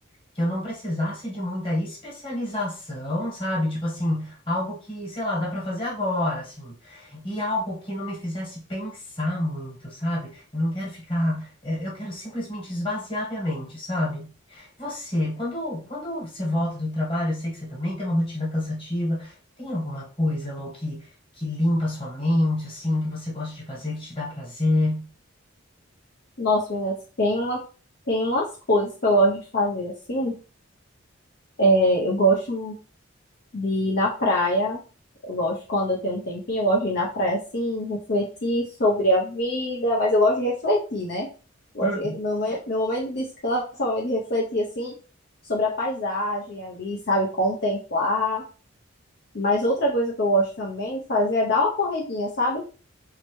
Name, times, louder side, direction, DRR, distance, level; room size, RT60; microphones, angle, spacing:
voice 1, 0.3-21.1 21.3-25.1 41.8-42.2, left 1 dB, 25° left, -4 dB, 1.3 m, -28 dB
voice 2, 26.4-27.6 28.1-30.3 31.6-32.8 33.5-34.8 35.2-41.3 41.7-44.9 45.5-48.4 49.3-52.6, equal, 50° left, -4 dB, 0.6 m, -24 dB
3.2 x 2.8 x 3.0 m, 0.36 s
head